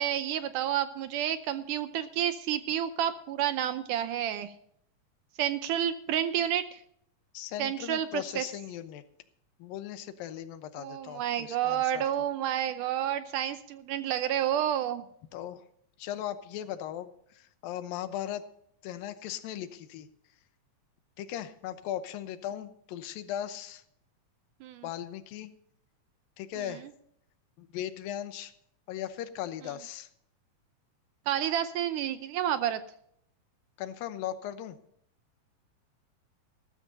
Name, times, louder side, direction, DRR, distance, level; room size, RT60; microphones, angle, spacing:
voice 1, 0.0-4.5 5.4-6.8 7.6-8.4 10.8-15.0 24.6-24.8 26.6-26.7 31.3-32.8, right 10 dB, 75° right, 10 dB, 2.1 m, -30 dB
voice 2, 7.3-9.0 9.6-12.0 15.3-15.7 16.0-18.4 18.8-20.1 21.2-23.8 24.8-25.5 26.4-26.9 27.6-28.5 28.9-30.1 33.8-34.8, left 11 dB, 85° left, 11 dB, 2.7 m, -38 dB
19.0 x 14.0 x 2.7 m, 0.69 s
omnidirectional pair, 4.0 m